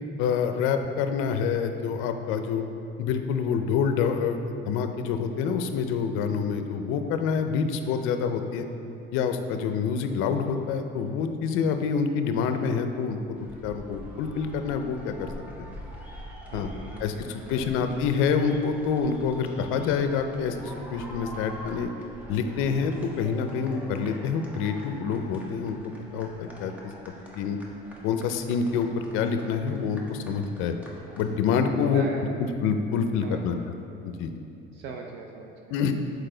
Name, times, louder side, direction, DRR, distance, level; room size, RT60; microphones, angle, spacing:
voice 1, 0.2-2.6 3.0-8.7 9.1-15.3 16.5-16.7 17.0-21.9 22.3-25.8 26.1-26.7 27.4-27.6 28.0-30.7 31.2-32.1 32.6-33.6 34.0-34.3 35.7-35.9, left 6 dB, 85° left, 7 dB, 0.5 m, -27 dB
sound 1, 13.4-31.4, equal, 5° right, 0.8 m, -45 dB
voice 2, 16.5-17.9 31.8-32.7 33.2-33.7 34.7-35.8, right 4 dB, 60° right, 2 dB, 0.5 m, -41 dB
6.7 x 4.6 x 3.8 m, 2.7 s
cardioid pair, 155°, 21 cm